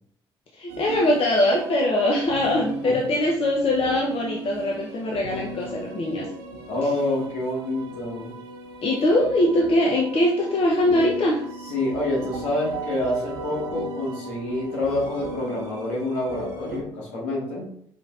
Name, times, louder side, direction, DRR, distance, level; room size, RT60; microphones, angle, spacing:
voice 1, 0.5-6.3 8.8-11.4, left 1 dB, 50° left, -2 dB, 0.8 m, -22 dB
sound 1, 0.7-16.8, right 2 dB, 90° right, 0.4 m, -37 dB
voice 2, 6.7-8.3 11.7-17.7, left 1 dB, 75° left, -5 dB, 1.8 m, -27 dB
5.1 x 3.2 x 2.5 m, 0.65 s
hypercardioid pair, 55°, 12 cm